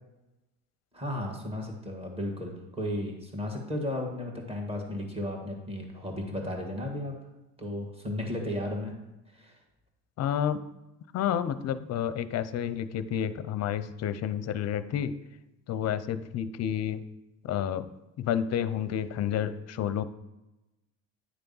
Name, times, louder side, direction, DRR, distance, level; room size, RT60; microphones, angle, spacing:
voice 1, 0.9-7.2 7.6-8.9 9.3-9.6, left 1 dB, 15° right, 1 dB, 1.7 m, -34 dB
voice 2, 10.2-10.6 11.1-15.1 15.7-17.0 17.4-17.9 18.2-20.0, left 9 dB, 45° left, 13 dB, 0.6 m, -30 dB
9.8 x 3.4 x 5.5 m, 0.96 s
supercardioid pair, 95°, 37 cm